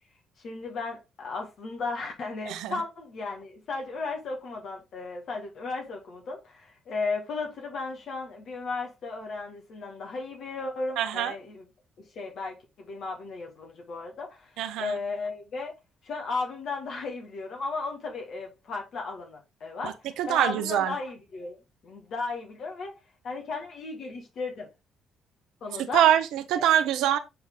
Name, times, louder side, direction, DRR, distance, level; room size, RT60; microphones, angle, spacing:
voice 1, 0.4-11.6 12.0-15.7 16.0-20.0 20.3-23.0 23.2-24.7 25.6-26.0, left 3 dB, 65° left, 1.8 m, -35 dB
voice 2, 11.0-11.3 14.6-15.0 19.8-20.9 25.8-27.2, right 11 dB, 80° right, 0.8 m, -24 dB
7.7 x 4.0 x 3.7 m
supercardioid pair, 60°, 0 cm